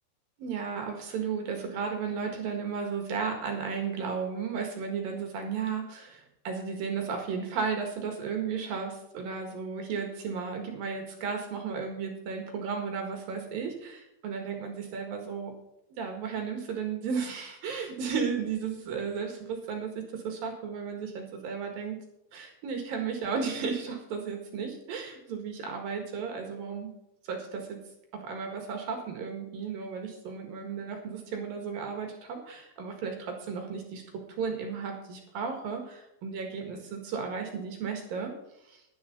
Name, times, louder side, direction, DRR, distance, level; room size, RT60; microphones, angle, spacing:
voice 1, 0.4-15.5 16.0-22.0 22.3-26.9 27.3-27.8 28.1-38.3 38.6-38.8, right 6 dB, 60° right, 3 dB, 2.9 m, -34 dB
12.0 x 10.5 x 5.3 m, 0.84 s
omnidirectional pair, 5.7 m